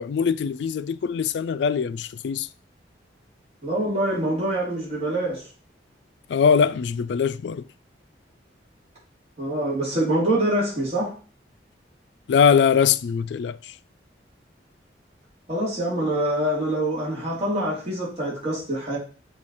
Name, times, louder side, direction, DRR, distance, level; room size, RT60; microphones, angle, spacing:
voice 1, 0.0-2.5 6.3-7.7 12.3-13.8, left 6 dB, 70° left, 0.3 m, -22 dB
voice 2, 3.6-5.4 9.4-11.2 15.5-19.0, right 1 dB, 35° right, 2.9 m, -25 dB
7.0 x 3.3 x 4.2 m
head